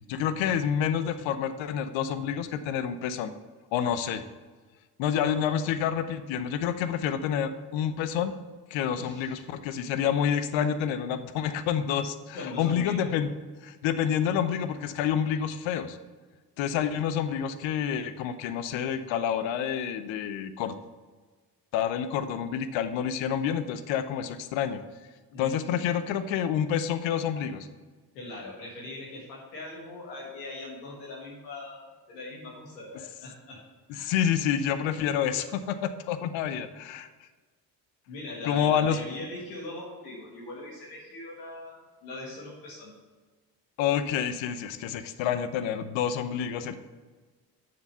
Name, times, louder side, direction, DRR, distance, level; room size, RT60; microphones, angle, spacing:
voice 1, 0.1-3.3 3.7-4.2 5.0-8.3 8.7-13.3 13.6-16.0 16.6-20.8 21.7-24.8 25.4-27.7 34.0-37.1 38.4-39.0 43.8-46.7, left 8 dB, 70° left, 11 dB, 0.8 m, -28 dB
voice 2, 9.0-9.4 12.3-13.1 25.3-25.9 28.1-33.6 33.9-34.1 38.1-42.9, left 2 dB, 85° left, -3 dB, 1.8 m, -41 dB
6.8 x 6.8 x 5.5 m, 1.4 s
hypercardioid pair, 45°, 47 cm